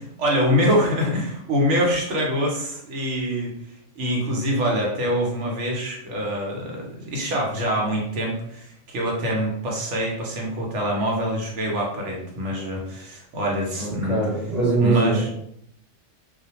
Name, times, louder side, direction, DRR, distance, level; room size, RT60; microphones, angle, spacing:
voice 1, 0.2-3.5 4.0-14.2 14.8-15.3, equal, 70° right, -1 dB, 0.9 m, -25 dB
voice 2, 13.8-15.3, right 3 dB, 35° left, -6 dB, 0.7 m, -22 dB
2.4 x 2.1 x 2.8 m, 0.72 s
omnidirectional pair, 1.3 m